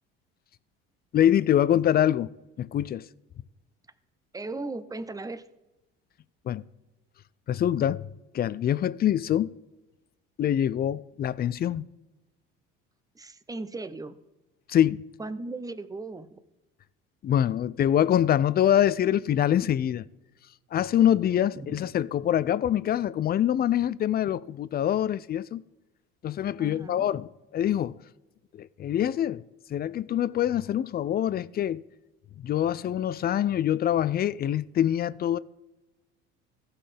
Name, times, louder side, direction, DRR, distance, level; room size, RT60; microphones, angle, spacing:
voice 1, 1.1-2.3 2.6-3.1 6.5-6.6 7.5-8.1 8.3-9.5 10.4-11.8 14.7-15.0 17.2-20.1 20.7-25.6 26.2-28.0 28.6-29.4 29.7-31.8 32.4-35.4, left 10 dB, 35° left, 0.4 m, -25 dB
voice 2, 4.3-5.5 13.1-14.2 15.2-16.4 21.6-21.9 26.6-27.1, right 2 dB, 10° right, 0.6 m, -37 dB
15.0 x 5.7 x 3.4 m
supercardioid pair, 75°, 30 cm